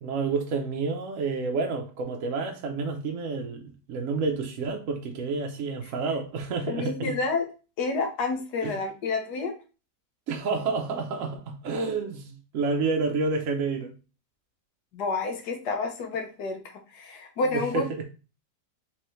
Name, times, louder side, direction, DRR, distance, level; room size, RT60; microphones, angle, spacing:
voice 1, 0.0-7.2 8.6-8.8 10.3-13.9 17.4-18.0, right 4 dB, 65° right, 0.9 m, -29 dB
voice 2, 6.7-7.5 7.8-9.5 14.9-18.0, left 3 dB, 70° left, 1.6 m, -29 dB
4.3 x 3.8 x 3.1 m
omnidirectional pair, 1.9 m